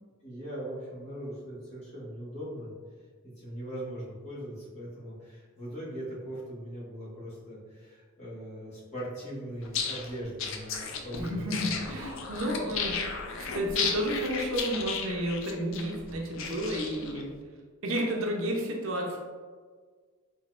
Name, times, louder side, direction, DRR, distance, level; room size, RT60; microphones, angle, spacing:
voice 1, 0.2-2.7 3.2-11.9, right 1 dB, 30° left, -8 dB, 1.5 m, -40 dB
sound 1, 9.6-17.2, left 5 dB, 60° left, 0.5 m, -34 dB
voice 2, 11.2-13.0 13.4-17.3 17.8-19.2, equal, 65° right, 0 dB, 0.7 m, -31 dB
4.1 x 3.9 x 2.5 m, 1.6 s
head